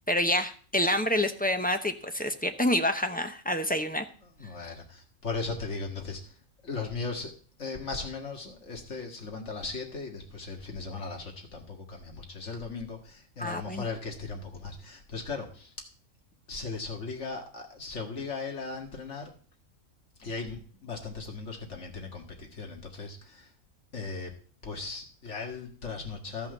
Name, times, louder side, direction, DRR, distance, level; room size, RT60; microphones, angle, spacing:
voice 1, 0.1-4.0 13.4-13.9, left 1 dB, 10° left, 6 dB, 0.7 m, -27 dB
voice 2, 4.4-6.2 6.6-7.3 7.6-15.7 16.5-19.3 20.2-23.5 23.9-24.3 24.6-26.5, left 4 dB, 60° left, 2 dB, 2.2 m, -37 dB
13.5 x 5.6 x 6.6 m, 0.42 s
omnidirectional pair, 1.4 m